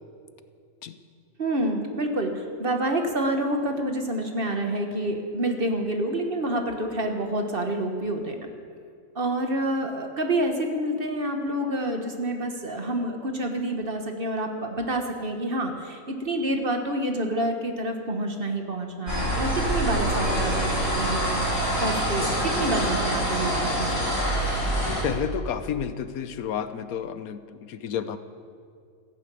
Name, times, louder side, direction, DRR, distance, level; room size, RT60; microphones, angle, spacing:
voice 1, 1.4-8.3 9.1-24.0, right 1 dB, 40° right, 4 dB, 1.6 m, -28 dB
sound 1, 19.1-25.0, right 1 dB, 45° left, 4.4 m, -25 dB
voice 2, 24.8-28.2, left 8 dB, 80° left, 11 dB, 1.3 m, -31 dB
15.0 x 11.0 x 8.5 m, 2.3 s
omnidirectional pair, 1.5 m